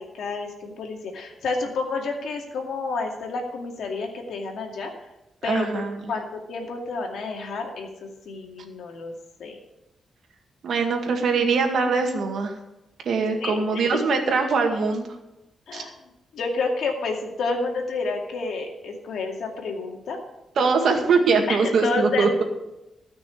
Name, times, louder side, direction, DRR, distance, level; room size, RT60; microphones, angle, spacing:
voice 1, 0.0-4.9 5.4-9.1 9.4-9.6 13.4-13.8 15.7-15.9 16.3-20.2 21.5-22.4, left 3 dB, 80° left, 1 dB, 2.3 m, -30 dB
voice 2, 5.4-6.1 10.6-12.6 13.1-15.1 15.7-15.8 20.6-22.4, right 4 dB, 70° right, 3 dB, 2.0 m, -22 dB
13.5 x 6.2 x 7.7 m, 0.96 s
cardioid pair, 120°, 0 cm